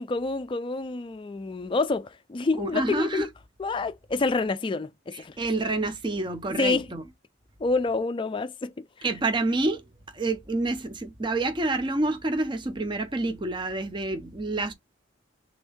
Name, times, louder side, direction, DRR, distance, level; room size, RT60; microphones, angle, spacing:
voice 1, 0.0-3.3 3.6-5.3 6.6-6.9 7.6-8.7, left 3 dB, 25° left, 0.3 m, -27 dB
voice 2, 2.6-3.3 5.1-7.0 9.0-9.8 10.1-14.7, right 2 dB, 25° right, 0.5 m, -28 dB
3.5 x 2.6 x 3.4 m
head